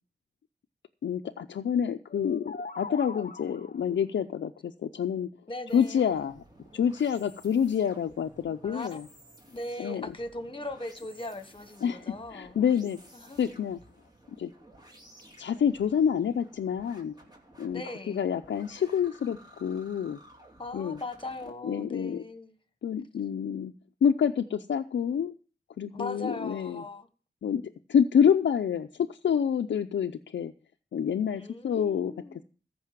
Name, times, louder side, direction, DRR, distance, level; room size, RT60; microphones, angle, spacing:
voice 1, 1.0-5.3 5.7-6.4 6.7-9.1 9.8-10.1 11.8-13.0 13.4-13.8 14.4-14.5 15.4-17.1 17.6-20.2 20.7-21.0 21.6-22.2 22.8-23.7 24.0-25.3 25.8-26.8 27.4-27.6 27.9-30.5 30.9-32.1, left 8 dB, 90° left, 0.6 m, -27 dB
sound 1, 2.1-3.9, left 3 dB, 50° left, 0.8 m, -41 dB
voice 2, 5.5-6.1 8.6-8.9 9.5-12.6 13.1-13.4 17.7-18.2 20.6-22.6 25.9-27.1 31.3-32.4, left 2 dB, 30° left, 1.5 m, -39 dB
sound 2, 5.7-21.5, right 1 dB, 20° right, 2.9 m, -55 dB
14.5 x 5.5 x 7.4 m
cardioid pair, 60°, 18 cm